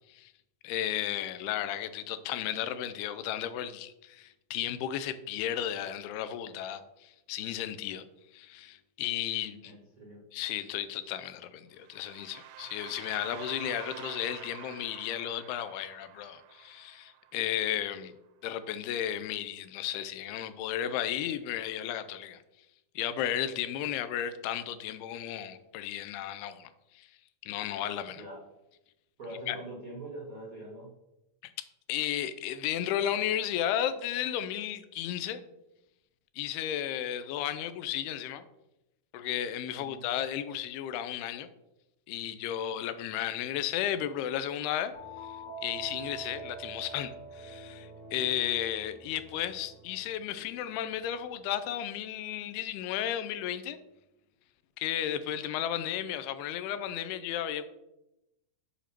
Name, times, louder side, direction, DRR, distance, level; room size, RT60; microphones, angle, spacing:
voice 1, 0.6-8.1 8.3-9.8 10.3-18.1 18.4-22.4 23.0-26.7 26.9-27.1 27.4-28.2 29.5-29.6 31.4-31.5 31.9-35.4 36.4-38.4 39.1-41.5 42.1-44.9 45.6-53.8 54.8-57.7, left 11 dB, 90° left, 2.6 m, -34 dB
voice 2, 9.6-10.2 28.1-28.4 29.2-30.9 39.7-40.0, right 1 dB, 75° right, 0.7 m, -43 dB
sound 1, 11.8-17.8, right 10 dB, 90° right, 2.6 m, -48 dB
sound 2, 44.9-51.4, right 2 dB, 30° left, 2.2 m, -46 dB
6.8 x 5.0 x 5.8 m
omnidirectional pair, 4.5 m